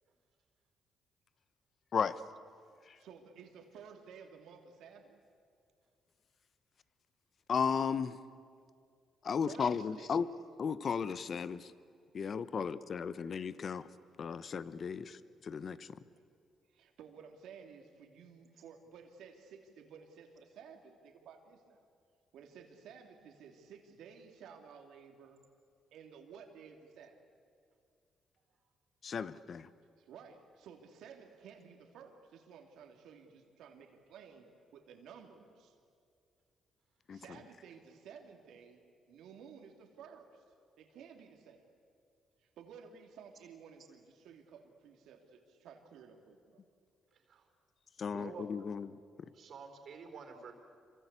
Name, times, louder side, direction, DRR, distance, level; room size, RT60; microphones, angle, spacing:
voice 1, 3.0-5.2 9.5-10.1 12.5-12.7 16.2-16.3 16.7-21.8 22.3-25.4 25.9-27.2 30.0-35.8 37.1-40.4 40.8-41.6 42.4-46.6, right 6 dB, 80° right, 4 dB, 3.1 m, -54 dB
voice 2, 7.5-8.2 9.2-10.3 10.6-11.7 12.1-13.9 14.2-16.0 29.0-29.7 37.1-37.2 48.0-49.0, left 6 dB, 50° left, 15 dB, 1.0 m, -35 dB
voice 3, 47.1-47.5 48.0-48.4 49.3-50.5, right 6 dB, 60° right, 6 dB, 4.2 m, -49 dB
27.0 x 24.5 x 8.4 m, 2.3 s
cardioid pair, 90°, 0 cm